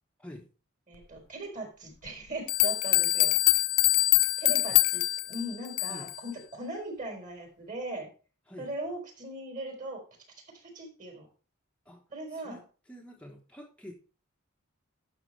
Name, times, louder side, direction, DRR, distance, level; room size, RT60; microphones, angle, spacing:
voice 1, 0.9-3.4 4.4-5.0 5.3-8.1 8.6-10.0 10.5-11.3 12.1-12.6, right 1 dB, 40° right, 2 dB, 4.2 m, -39 dB
sound 1, 2.1-2.2 2.5-6.2, left 19 dB, 80° left, 0.5 m, -24 dB
voice 2, 12.3-13.9, equal, 5° left, -1 dB, 1.2 m, -47 dB
11.5 x 6.7 x 3.3 m, 0.35 s
head